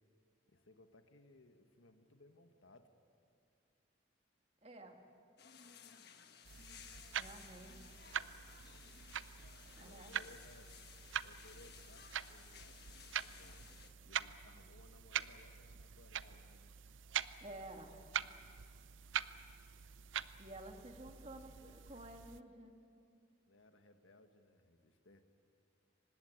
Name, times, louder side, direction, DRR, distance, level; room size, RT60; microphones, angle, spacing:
voice 1, 0.5-2.9 8.0-8.7 9.0-9.1 9.8-10.7 11.2-13.6 14.0-16.7 23.5-25.2, left 2 dB, 85° left, 7 dB, 1.6 m, -63 dB
voice 2, 4.6-5.0 7.1-7.9 9.8-10.1 17.4-17.9 20.4-22.8, right 1 dB, 30° right, 3 dB, 2.0 m, -52 dB
sound 1, 5.4-13.9, left 7 dB, 55° left, 1.4 m, -58 dB
sound 2, 6.4-22.4, right 9 dB, 80° right, 0.6 m, -45 dB
24.5 x 20.0 x 8.3 m, 2.4 s
head